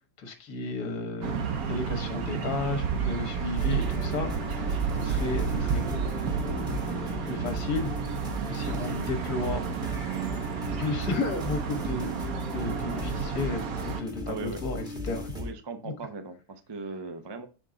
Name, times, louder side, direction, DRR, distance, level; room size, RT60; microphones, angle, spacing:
voice 1, 0.2-1.4 1.7-10.0 10.8-12.1 12.5-15.3 15.9-16.0, left 3 dB, 70° left, 5 dB, 1.7 m, -34 dB
sound 1, 1.2-14.0, right 6 dB, 65° right, 1.3 m, -31 dB
sound 2, 3.6-15.5, left 1 dB, 5° right, 1.0 m, -38 dB
voice 2, 14.3-14.6 15.3-17.5, right 4 dB, 30° right, 7 dB, 0.5 m, -38 dB
7.3 x 3.8 x 3.8 m, 0.33 s
omnidirectional pair, 1.8 m